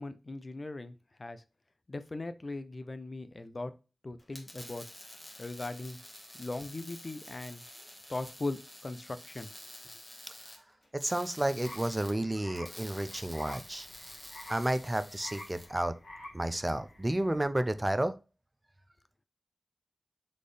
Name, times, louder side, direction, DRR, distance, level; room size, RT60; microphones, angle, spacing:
voice 1, 0.0-1.4 1.9-3.7 4.0-4.9 5.4-6.0 6.3-7.6 8.1-9.5, left 2 dB, 40° left, 11 dB, 0.5 m, -39 dB
sound 1, 4.2-15.7, left 1 dB, 15° left, 1.4 m, -49 dB
voice 2, 10.9-13.9 14.5-15.9 16.3-18.1, right 1 dB, 20° right, 12 dB, 0.4 m, -31 dB
sound 2, 11.6-17.4, left 1 dB, 90° left, 1.4 m, -50 dB
4.2 x 3.3 x 3.2 m, 0.31 s
wide cardioid pair, 70°, 0 cm